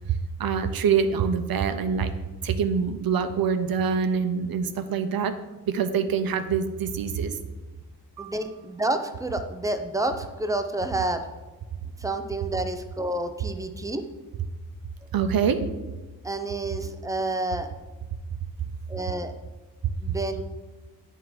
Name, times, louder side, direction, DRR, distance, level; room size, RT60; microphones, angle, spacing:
voice 1, 0.4-2.1 2.4-5.3 5.7-7.3 8.2-8.3 15.1-15.6, right 6 dB, 80° right, 9 dB, 0.7 m, -25 dB
voice 2, 8.2-11.3 12.0-14.0 16.2-17.7 18.9-19.3 20.0-20.4, right 2 dB, 10° right, 7 dB, 0.4 m, -29 dB
9.7 x 3.6 x 4.7 m, 1.2 s
wide cardioid pair, 160°, 35 cm